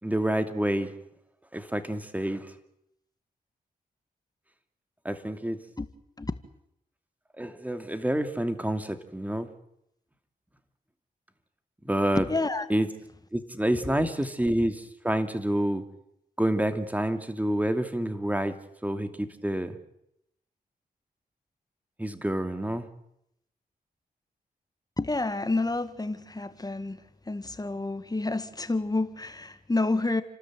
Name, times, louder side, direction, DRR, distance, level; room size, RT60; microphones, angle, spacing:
voice 1, 0.0-0.9 1.5-2.5 5.0-5.6 7.4-9.5 11.8-12.2 12.7-12.9 13.3-15.8 16.4-18.6 18.8-19.8 22.0-22.9, right 1 dB, 10° right, 8 dB, 2.6 m, -28 dB
voice 2, 12.2-12.7 25.0-27.0 27.3-30.2, left 2 dB, 25° left, 11 dB, 1.9 m, -29 dB
30.0 x 13.0 x 9.3 m, 0.79 s
cardioid pair, 65°, 16 cm